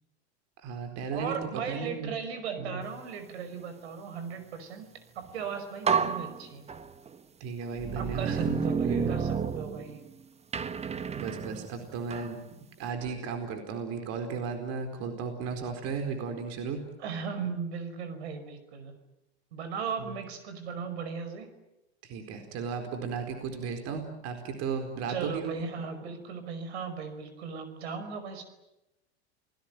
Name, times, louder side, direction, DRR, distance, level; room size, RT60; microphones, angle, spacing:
voice 1, 0.6-1.4 1.7-2.1 2.6-2.8 7.4-8.6 8.8-9.1 11.2-12.4 12.8-16.8 22.0-25.6, right 5 dB, 50° right, 6 dB, 4.4 m, -35 dB
voice 2, 1.1-6.6 8.0-10.0 17.0-18.9 19.5-21.5 25.1-28.4, right 6 dB, 70° right, 9 dB, 5.5 m, -37 dB
sound 1, 5.3-5.4 5.8-7.1 7.8-10.1 10.5-12.3, right 6 dB, 20° right, 1.3 m, -31 dB
30.0 x 20.0 x 9.2 m, 0.92 s
hypercardioid pair, 95°, 33 cm